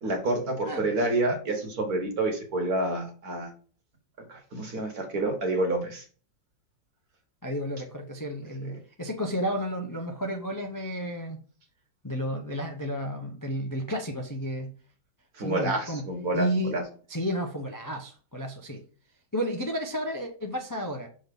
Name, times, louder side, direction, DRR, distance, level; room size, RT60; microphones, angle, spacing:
voice 1, 0.0-3.5 4.3-6.0 8.6-8.7 15.3-16.8, right 2 dB, 55° right, 3 dB, 1.9 m, -28 dB
voice 2, 7.4-11.4 12.0-14.7 15.4-16.1 16.3-16.8 17.1-18.8 19.3-21.1, equal, 30° left, 2 dB, 0.4 m, -32 dB
6.1 x 3.9 x 5.3 m, 0.41 s
omnidirectional pair, 1.9 m